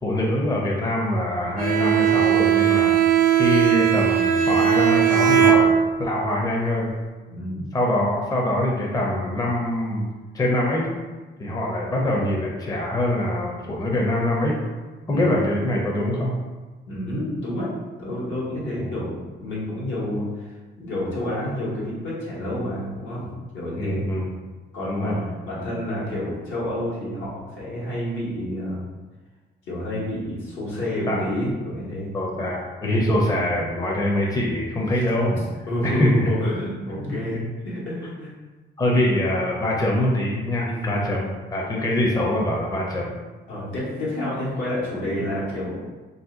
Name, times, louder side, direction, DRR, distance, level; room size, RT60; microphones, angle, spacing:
voice 1, 0.0-2.9 3.3-5.7 6.0-6.9 7.7-10.9 11.4-14.6 15.1-16.3 18.8-19.0 23.8-24.3 24.8-25.2 31.1-31.2 32.1-35.4 35.8-36.3 37.1-37.2 38.8-43.1, left 1 dB, 20° left, -3 dB, 0.5 m, -24 dB
Bowed string instrument, 1.6-6.2, right 9 dB, 45° right, 0.4 m, -18 dB
voice 2, 7.3-7.6 15.1-15.4 16.8-17.7 18.0-24.1 24.7-28.9 29.7-32.4 35.3-35.4 35.7-38.3 40.7-41.0 43.5-45.8, left 1 dB, 75° left, -7 dB, 1.3 m, -29 dB
2.6 x 2.2 x 3.7 m, 1.3 s
cardioid pair, 90°, 20 cm